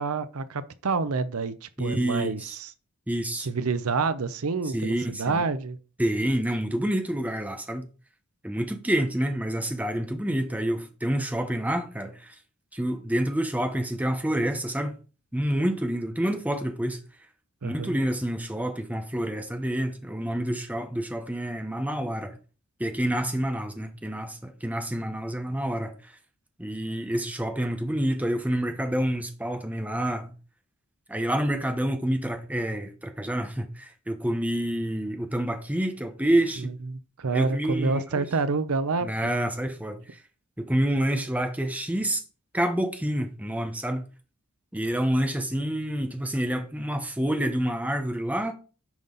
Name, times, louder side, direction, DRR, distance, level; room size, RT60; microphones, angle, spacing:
voice 1, 0.0-2.7 3.4-5.8 17.6-17.9 36.6-39.3, right 4 dB, 75° right, 0.7 m, -28 dB
voice 2, 1.8-2.6 3.1-3.5 4.6-5.4 6.0-7.9 8.4-12.3 12.7-14.9 15.3-17.0 17.6-22.4 22.8-25.9 26.6-30.4 31.1-36.7 37.3-38.3 39.0-40.2 40.6-42.2 42.5-44.1 44.7-48.5, right 1 dB, 5° right, 1.0 m, -28 dB
9.4 x 5.5 x 3.9 m
head